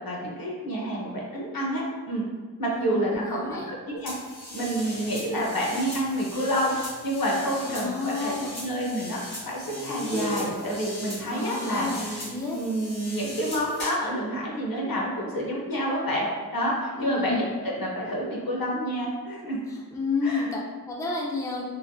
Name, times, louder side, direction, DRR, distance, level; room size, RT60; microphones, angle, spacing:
voice 1, 0.0-2.3 2.6-4.1 4.5-6.8 7.0-8.4 8.6-12.2 12.5-16.3 16.5-19.6 20.2-20.5, equal, 65° left, -3 dB, 0.8 m, -28 dB
voice 2, 2.7-3.7 7.6-8.6 11.3-12.6 17.0-17.5 19.9-21.6, left 3 dB, 10° left, -2 dB, 0.4 m, -30 dB
sound 1, 4.1-14.1, equal, 90° left, 1.4 m, -38 dB
3.2 x 2.1 x 2.6 m, 1.5 s
wide cardioid pair, 60°, 38 cm